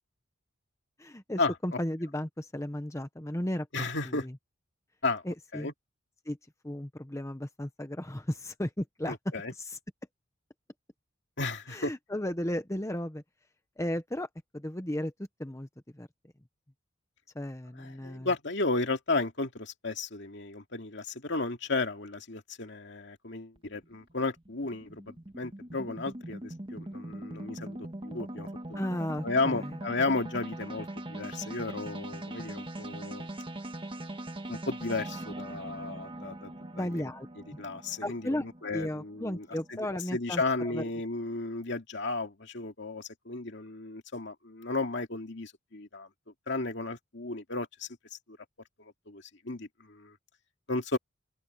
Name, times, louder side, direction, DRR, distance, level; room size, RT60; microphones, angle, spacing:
voice 1, 1.0-3.7 4.0-4.4 5.2-5.7 6.2-6.4 6.6-9.2 9.5-9.8 11.7-13.2 13.8-15.1 15.4-15.7 15.9-16.1 17.3-18.3 28.7-29.8 36.7-37.3 38.0-38.5 38.7-40.8, left 1 dB, 15° left, 1.0 m, -35 dB
voice 2, 3.7-4.2 5.0-5.2 5.5-5.7 9.1-9.5 11.4-11.9 17.8-28.8 29.2-33.3 34.5-37.0 37.6-39.4 39.7-39.8 40.1-46.1 46.5-48.4 49.1-50.1 50.7-51.0, left 3 dB, 60° left, 2.5 m, -34 dB
sound 1, 23.6-39.9, right 1 dB, 25° right, 1.5 m, -41 dB
open air
head